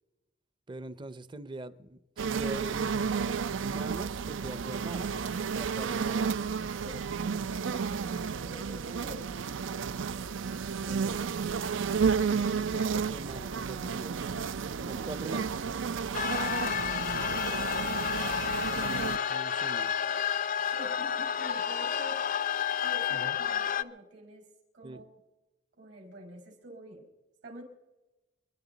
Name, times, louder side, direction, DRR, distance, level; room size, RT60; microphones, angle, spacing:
voice 1, 0.7-3.1 3.6-6.3 10.9-11.2 12.3-14.2 14.8-15.6 18.7-20.0 23.1-23.4 24.8-25.0, right 2 dB, 25° right, 0.6 m, -42 dB
sound 1, 2.2-19.2, right 6 dB, 90° right, 0.5 m, -32 dB
voice 2, 6.7-7.1 8.4-9.3 16.2-17.9 20.7-22.3 22.8-24.5 24.7-25.1 25.8-27.1 27.4-27.6, equal, 70° right, 5.1 m, -47 dB
sound 2, 16.1-23.8, left 8 dB, 45° left, 0.5 m, -30 dB
28.5 x 11.5 x 4.0 m
head